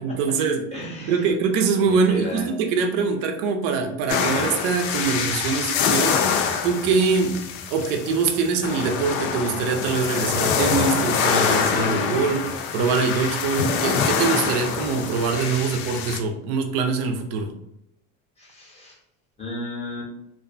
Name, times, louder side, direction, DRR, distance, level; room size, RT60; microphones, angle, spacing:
voice 1, 0.0-0.6 1.1-6.2 6.6-7.4 7.7-17.5, right 5 dB, 60° right, 5 dB, 0.6 m, -23 dB
voice 2, 0.7-1.3 1.8-2.5 18.4-19.0 19.4-20.1, left 1 dB, 15° left, -4 dB, 0.7 m, -34 dB
sound 1, 4.1-16.2, left 6 dB, 75° left, 0.5 m, -25 dB
2.5 x 2.2 x 2.5 m, 0.79 s
supercardioid pair, 115°, 43 cm